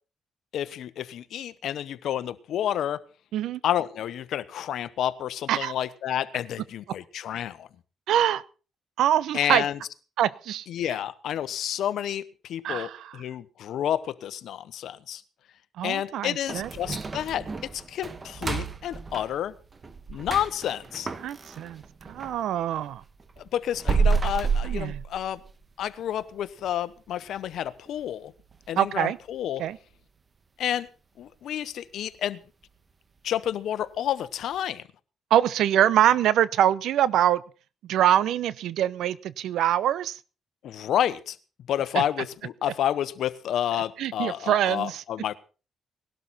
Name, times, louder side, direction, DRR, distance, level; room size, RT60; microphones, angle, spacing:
voice 1, 0.5-3.0 3.6-7.7 9.3-9.8 10.7-15.2 15.8-19.5 20.1-21.1 23.4-25.4 25.8-28.3 28.7-29.6 30.6-30.9 31.2-32.4 33.2-34.8 40.6-41.4 41.7-45.3, left 10 dB, 75° left, 1.1 m, -30 dB
voice 2, 8.1-8.4 9.0-9.6 10.2-10.6 12.6-13.2 15.8-17.0 21.2-21.8 22.1-23.0 24.6-25.0 28.8-29.2 29.6-29.8 35.3-37.4 37.9-40.2 41.9-42.0 44.0-45.0, right 11 dB, 80° right, 0.8 m, -24 dB
sound 1, 16.5-22.4 22.8-25.6 26.0-26.1 26.6-26.7 27.2-27.5 27.9-28.0 28.5-28.6, right 5 dB, 30° right, 1.5 m, -30 dB
19.0 x 12.0 x 4.2 m
cardioid pair, 90°, 0 cm